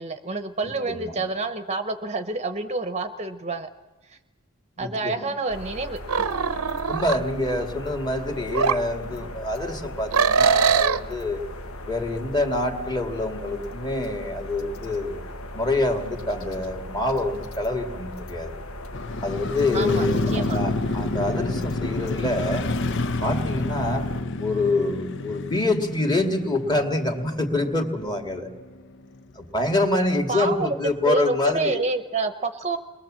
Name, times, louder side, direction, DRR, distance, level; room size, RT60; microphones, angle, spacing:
voice 1, 0.0-3.7 4.0-4.2 4.8-6.3 19.7-20.6 30.3-30.8 31.0-32.8, right 3 dB, 30° right, 9 dB, 0.9 m, -28 dB
voice 2, 0.6-1.1 4.8-5.3 6.9-11.5 11.9-15.2 15.5-18.5 19.2-22.7 23.2-24.1 24.4-28.5 29.4-31.8, left 2 dB, 20° left, 4 dB, 2.2 m, -26 dB
sound 1, 5.5-24.2, left 1 dB, 80° left, 1.5 m, -38 dB
sound 2, 6.1-7.2 8.5-8.8 10.1-11.0, right 6 dB, 85° right, 0.8 m, -21 dB
Motorcycle, 18.9-29.0 29.4-29.5, left 2 dB, 55° left, 0.8 m, -29 dB
29.0 x 21.5 x 7.5 m, 1.2 s
head